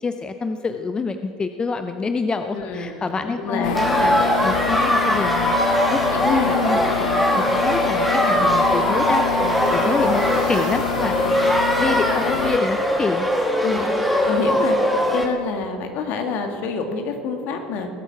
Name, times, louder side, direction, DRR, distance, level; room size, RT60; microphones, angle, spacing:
voice 1, 0.0-4.1 4.4-7.0 7.3-13.4, left 4 dB, 25° left, 8 dB, 0.7 m, -27 dB
voice 2, 2.5-4.2 6.1-7.1 11.1-11.4 13.6-13.9 14.3-14.8 15.1-17.9, left 4 dB, 55° left, 5 dB, 1.9 m, -27 dB
sound 1, 3.6-12.6, left 13 dB, 80° left, 0.3 m, -27 dB
sound 2, 3.7-15.3, equal, ahead, 2.2 m, -20 dB
sound 3, 8.0-13.0, right 3 dB, 85° right, 1.9 m, -39 dB
19.5 x 8.4 x 5.8 m, 2.5 s
hypercardioid pair, 75°, 4 cm